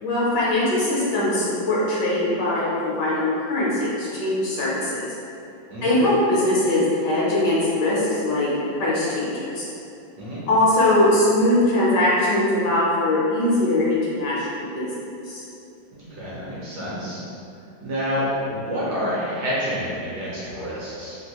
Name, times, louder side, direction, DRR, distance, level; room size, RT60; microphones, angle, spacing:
voice 1, 0.0-5.1 5.8-9.7 10.5-14.9 15.2-15.4, left 1 dB, 70° left, -7 dB, 1.2 m, -21 dB
voice 2, 15.9-17.2 17.8-21.2, equal, 70° right, -8 dB, 1.1 m, -28 dB
3.5 x 2.3 x 2.8 m, 2.7 s
omnidirectional pair, 2.2 m